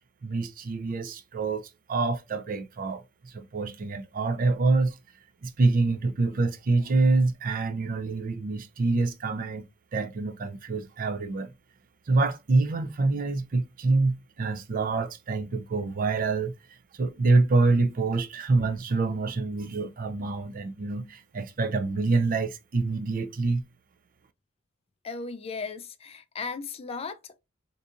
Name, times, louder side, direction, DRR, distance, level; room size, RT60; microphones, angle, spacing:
voice 1, 0.2-5.0 5.4-11.5 12.1-23.6, right 3 dB, 40° right, 0.4 m, -26 dB
voice 2, 25.0-27.4, left 4 dB, 30° left, 0.4 m, -36 dB
4.0 x 2.6 x 2.4 m
head